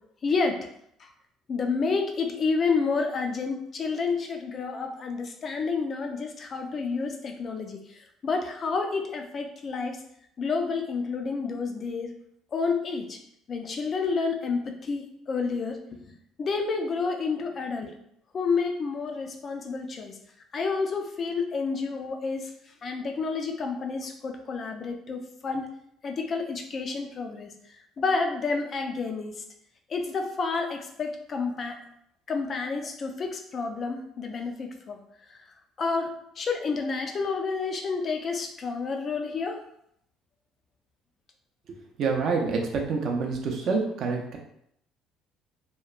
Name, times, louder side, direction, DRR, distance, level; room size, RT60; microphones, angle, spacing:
voice 1, 0.2-0.6 1.5-7.8 8.2-10.0 10.4-12.1 12.5-13.2 13.5-16.1 16.4-17.9 18.3-20.1 20.5-22.5 22.8-25.7 26.0-27.5 28.0-29.3 29.9-31.8 32.3-35.0 35.8-36.1 36.4-39.6, left 4 dB, 30° left, 4 dB, 0.3 m, -29 dB
voice 2, 42.0-42.6 42.9-44.4, right 4 dB, 45° right, 1 dB, 0.5 m, -27 dB
2.8 x 2.1 x 2.4 m, 0.73 s
cardioid pair, 155°, 0 cm